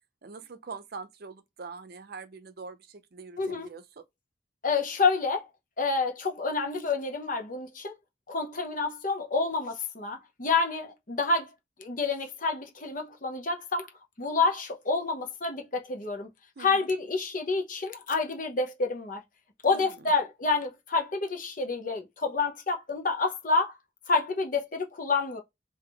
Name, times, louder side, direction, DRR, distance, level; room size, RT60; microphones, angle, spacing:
voice 1, 0.2-4.0 16.6-16.9 19.6-20.1, right 4 dB, 55° right, 0.6 m, -44 dB
voice 2, 3.4-3.7 4.6-5.5 5.8-8.0 8.3-11.5 11.8-13.9 14.2-16.3 16.6-19.2 19.6-23.7 24.1-25.4, left 4 dB, 45° left, 0.9 m, -28 dB
3.6 x 2.7 x 3.4 m
head